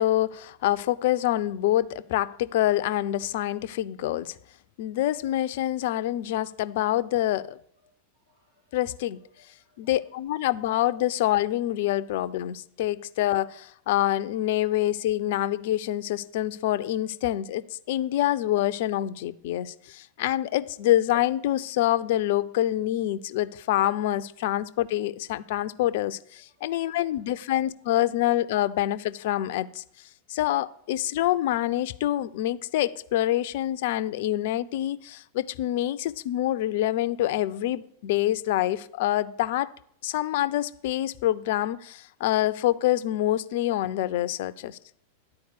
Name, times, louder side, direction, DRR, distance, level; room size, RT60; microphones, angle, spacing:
voice 1, 0.0-4.4 4.8-7.6 8.7-9.2 9.8-29.8 30.3-39.7 40.0-44.8, left 13 dB, 50° left, 0.4 m, -26 dB
voice 2, 8.3-11.0 14.4-14.6 16.9-17.1 18.1-18.2 20.6-20.9 26.6-28.0 28.4-28.5, left 2 dB, 80° right, 3.9 m, -66 dB
10.5 x 4.5 x 6.5 m
figure-of-eight pair, 90°, 0 cm